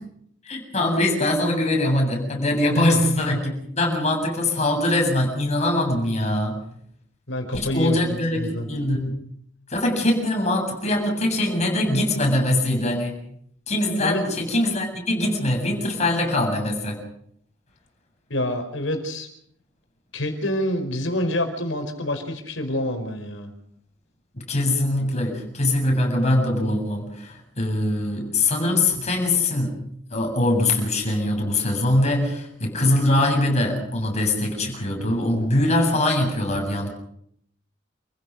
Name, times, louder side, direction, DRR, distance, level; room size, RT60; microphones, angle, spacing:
voice 1, 0.4-6.6 7.5-9.2 9.7-13.2 13.7-17.0 24.3-29.8 30.1-36.9, left 1 dB, 35° left, 1 dB, 7.7 m, -22 dB
voice 2, 2.7-3.5 7.3-8.0 8.3-8.7 14.0-14.2 18.3-19.3 20.1-23.5, left 1 dB, 85° left, 6 dB, 4.9 m, -27 dB
29.0 x 16.0 x 6.5 m, 0.68 s
head